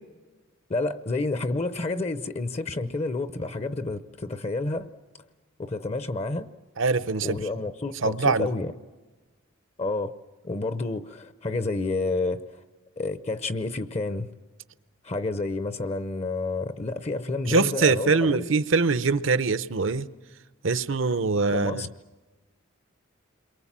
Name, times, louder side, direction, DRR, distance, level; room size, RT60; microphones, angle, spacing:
voice 1, 0.7-4.9 5.6-6.5 7.2-8.7 9.8-10.1 10.4-12.6 13.0-14.3 15.0-18.5 21.5-21.9, left 2 dB, 30° left, 0.7 m, -29 dB
voice 2, 6.8-7.4 8.0-8.5 17.5-20.1 20.6-21.8, right 4 dB, 65° right, 0.8 m, -23 dB
29.0 x 23.0 x 7.4 m
head